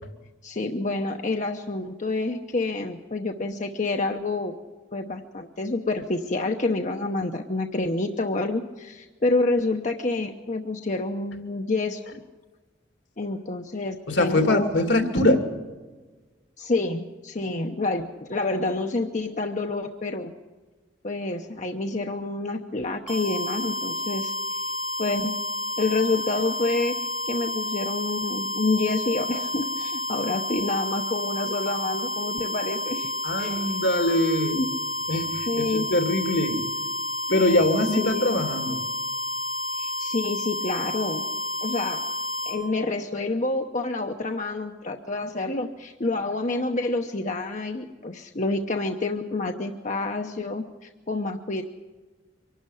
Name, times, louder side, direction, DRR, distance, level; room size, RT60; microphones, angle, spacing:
voice 1, 0.4-4.6 4.9-12.2 13.2-14.7 16.6-20.3 21.0-24.3 25.0-25.4 25.8-27.0 27.3-33.1 33.4-33.8 34.5-34.7 35.5-35.9 37.3-37.5 38.0-38.3 39.8-41.3 41.6-42.0 42.4-51.6, left 2 dB, 40° left, 4 dB, 0.9 m, -28 dB
voice 2, 14.1-15.5 33.2-34.6 35.1-36.7 37.3-38.8, left 1 dB, 70° left, 6 dB, 2.5 m, -23 dB
sound 1, 23.1-42.6, left 1 dB, 5° right, 3.6 m, -30 dB
24.0 x 12.0 x 9.9 m, 1.3 s
head